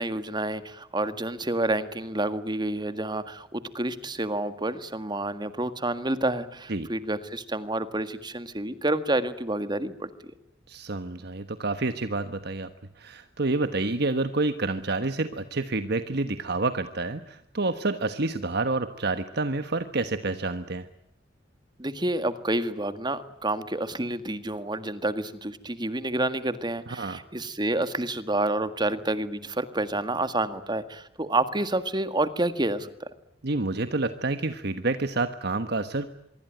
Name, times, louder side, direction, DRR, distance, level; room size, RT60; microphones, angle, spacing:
voice 1, 0.0-10.1 21.8-33.1, right 2 dB, 25° right, 11 dB, 1.8 m, -29 dB
voice 2, 10.7-12.7 13.0-20.9 26.9-27.2 33.4-36.2, right 3 dB, 60° right, 10 dB, 1.3 m, -28 dB
25.0 x 23.5 x 9.2 m, 0.78 s
head